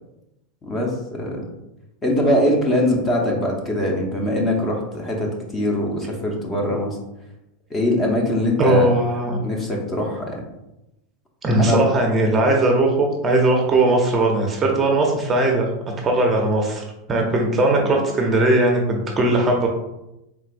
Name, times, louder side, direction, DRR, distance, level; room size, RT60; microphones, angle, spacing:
voice 1, 0.6-1.4 2.0-7.0 7.7-8.9 9.4-10.4 11.6-11.8 17.8-18.0, left 1 dB, 20° left, 0 dB, 0.9 m, -22 dB
voice 2, 8.6-9.4 11.4-15.7 16.0-16.8 17.1-19.7, right 2 dB, 20° right, 1 dB, 0.7 m, -19 dB
4.5 x 3.6 x 2.5 m, 0.90 s
supercardioid pair, 140°, 0 cm